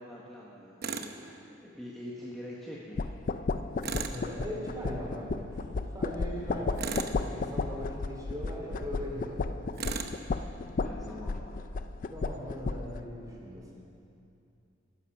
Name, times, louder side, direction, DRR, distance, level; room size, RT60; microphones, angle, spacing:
voice 1, 0.0-3.1 10.8-11.6, left 1 dB, ahead, -6 dB, 1.3 m, -44 dB
Tools, 0.8-1.1 3.8-4.2 6.8-7.2 9.8-10.2, right 5 dB, 55° right, 0.8 m, -35 dB
sound 1, 3.0-13.0, left 3 dB, 45° left, 0.4 m, -34 dB
voice 2, 4.1-9.4 12.1-13.7, equal, 20° right, -2 dB, 2.8 m, -39 dB
15.0 x 11.5 x 5.9 m, 2.7 s
head